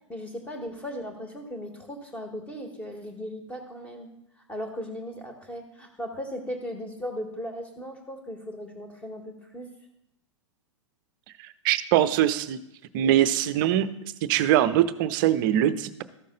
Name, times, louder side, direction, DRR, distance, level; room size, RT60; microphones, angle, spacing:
voice 1, 0.1-4.1 4.5-9.7, equal, 10° left, 3 dB, 1.8 m, -37 dB
voice 2, 11.6-12.6 12.9-13.9 14.2-16.0, right 12 dB, 40° right, 14 dB, 0.6 m, -22 dB
13.5 x 6.5 x 3.9 m, 0.83 s
figure-of-eight pair, 100°, 16 cm